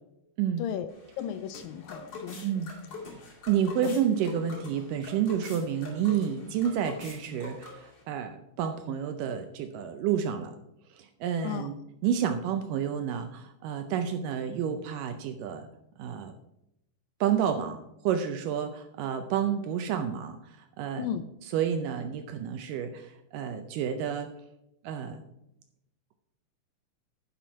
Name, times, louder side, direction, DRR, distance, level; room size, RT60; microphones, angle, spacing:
voice 1, 0.6-0.9 1.2-2.6 3.1-3.4 11.4-11.7 21.0-21.2, left 9 dB, 80° left, 11 dB, 2.1 m, -35 dB
sound 1, 0.9-8.0, left 3 dB, 35° left, 2.5 m, -44 dB
voice 2, 2.4-2.7 3.5-10.6 10.9-11.7 12.0-15.7 16.0-16.3 17.2-17.8 18.0-21.1 21.5-24.3 24.8-25.2, right 8 dB, 80° right, 7 dB, 2.0 m, -30 dB
10.0 x 6.1 x 5.6 m, 0.84 s
omnidirectional pair, 4.3 m